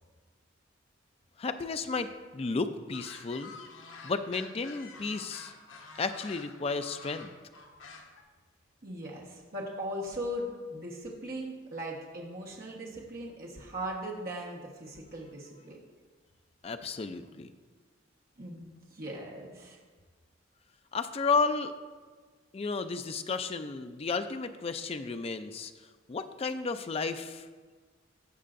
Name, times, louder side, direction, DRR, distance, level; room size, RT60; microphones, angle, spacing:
voice 1, 1.4-2.1 2.3-3.5 4.0-5.5 6.0-7.3 16.6-17.5 20.9-21.7 22.5-25.7 26.1-27.5, left 4 dB, 30° left, 9 dB, 0.4 m, -32 dB
sound 1, 2.9-8.2, left 4 dB, 80° left, 1.1 m, -48 dB
voice 2, 8.8-15.8 18.4-19.8, equal, 45° right, -3 dB, 1.3 m, -39 dB
15.0 x 5.5 x 2.6 m, 1.4 s
head